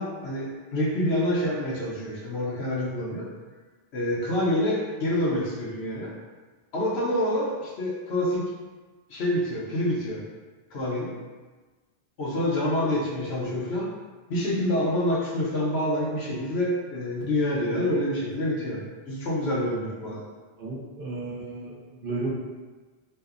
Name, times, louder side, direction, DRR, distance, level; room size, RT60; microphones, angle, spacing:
voice 1, 0.0-3.3 3.9-6.1 6.7-8.4 9.1-10.2 10.7-11.1 12.2-13.9 14.3-18.8 19.1-20.3, left 1 dB, 75° left, -5 dB, 0.9 m, -27 dB
voice 2, 20.6-22.3, right 3 dB, 60° right, -6 dB, 0.8 m, -34 dB
2.7 x 2.0 x 2.4 m, 1.3 s
omnidirectional pair, 1.1 m